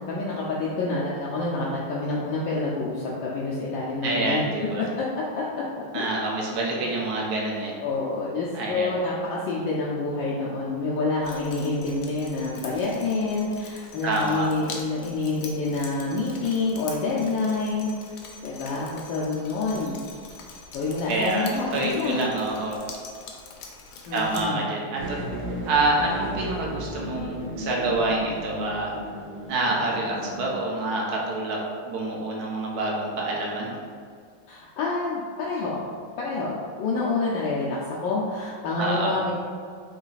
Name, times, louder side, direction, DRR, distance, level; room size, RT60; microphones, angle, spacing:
voice 1, 0.1-4.5 4.8-6.3 7.8-17.9 18.2-20.0 20.7-21.7 22.0-22.2 24.1-24.6 34.5-35.8 36.2-39.3, left 3 dB, 75° left, -5 dB, 1.2 m, -28 dB
voice 2, 4.0-4.9 5.9-7.7 8.5-9.0 14.0-14.5 21.0-22.8 24.1-25.2 25.7-28.9 29.5-33.7 38.8-39.1, right 2 dB, 60° right, -2 dB, 1.1 m, -27 dB
Drip, 11.2-24.4, left 4 dB, 90° left, 1.5 m, -44 dB
sound 1, 25.0-30.5, right 1 dB, 85° right, 1.8 m, -35 dB
4.0 x 3.2 x 3.9 m, 2.1 s
omnidirectional pair, 2.3 m